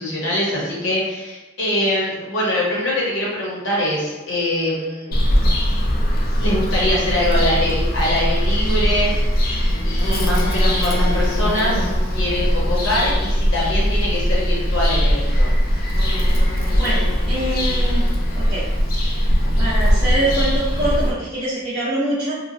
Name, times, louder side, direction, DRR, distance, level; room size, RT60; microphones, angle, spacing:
voice 1, 0.0-5.2 6.4-9.1 9.8-15.5, left 1 dB, 60° left, -5 dB, 0.9 m, -23 dB
Bird vocalization bird call bird song, 5.1-21.1, equal, 45° left, 0.4 m, -19 dB
voice 2, 16.7-18.1 18.4-18.6 19.6-22.4, right 1 dB, 25° right, -11 dB, 0.5 m, -24 dB
2.9 x 2.1 x 2.6 m, 1.2 s
head